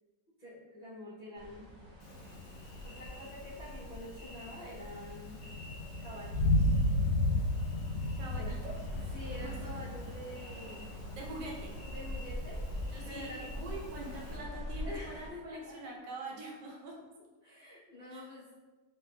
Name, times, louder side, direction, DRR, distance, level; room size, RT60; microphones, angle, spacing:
voice 1, 0.4-1.7 2.8-5.4 6.0-6.7 8.4-8.6 9.1-10.9 11.8-12.6 13.0-13.9 14.8-15.8 17.4-18.7, left 1 dB, 65° left, -10 dB, 0.4 m, -47 dB
sound 1, 1.3-15.3, left 1 dB, 90° right, 0.6 m, -45 dB
Thunder, 2.0-14.4, left 1 dB, 85° left, 1.3 m, -35 dB
voice 2, 8.2-8.8 9.4-9.6 11.1-11.8 12.9-17.0 18.1-18.3, right 2 dB, 75° right, -1 dB, 1.2 m, -44 dB
3.2 x 3.0 x 2.2 m, 1.3 s
omnidirectional pair, 1.9 m